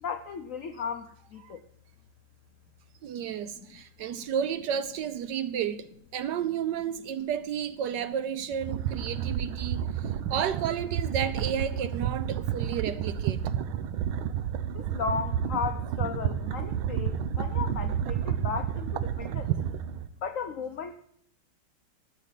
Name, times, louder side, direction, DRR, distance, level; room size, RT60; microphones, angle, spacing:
voice 1, 0.0-1.6 3.5-3.7 4.2-4.3 14.7-19.6 20.2-20.9, left 6 dB, 80° left, 0.7 m, -35 dB
voice 2, 3.0-5.9 6.1-13.4, right 8 dB, 70° right, 1.1 m, -32 dB
sound 1, 8.5-20.1, right 9 dB, 90° right, 1.5 m, -30 dB
13.5 x 6.6 x 8.2 m
omnidirectional pair, 2.2 m